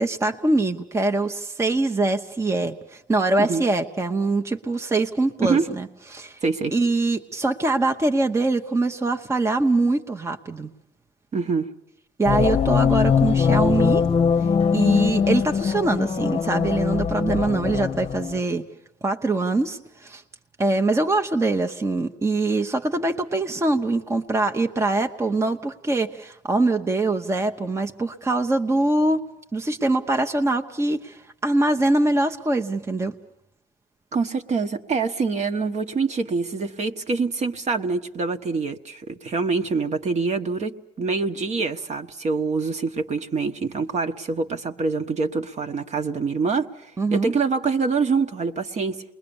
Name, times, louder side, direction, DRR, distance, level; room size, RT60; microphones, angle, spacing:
voice 1, 0.0-6.4 6.7-10.7 12.2-14.1 14.7-18.7 19.0-20.2 20.6-29.2 29.5-33.1 47.0-47.3, right 2 dB, 15° right, 0.9 m, -23 dB
voice 2, 6.4-6.7 11.3-11.7 34.1-46.7 47.1-49.0, right 4 dB, 40° right, 1.3 m, -25 dB
sound 1, 12.3-18.4, left 6 dB, 35° left, 0.8 m, -21 dB
28.5 x 21.0 x 7.1 m
cardioid pair, 110°, 17 cm